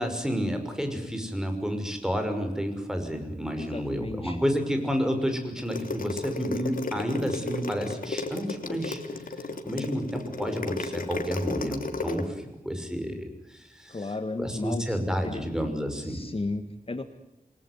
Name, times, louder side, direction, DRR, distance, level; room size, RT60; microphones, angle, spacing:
voice 1, 0.0-9.0 9.6-14.0 14.4-16.2, equal, 5° right, 6 dB, 6.0 m, -30 dB
voice 2, 3.6-4.4 13.9-15.4 15.9-17.0, left 2 dB, 40° left, 8 dB, 1.8 m, -34 dB
sound 1, 5.6-12.2, left 3 dB, 70° left, 3.1 m, -33 dB
28.0 x 20.5 x 9.7 m, 0.95 s
wide cardioid pair, 95°, 15 cm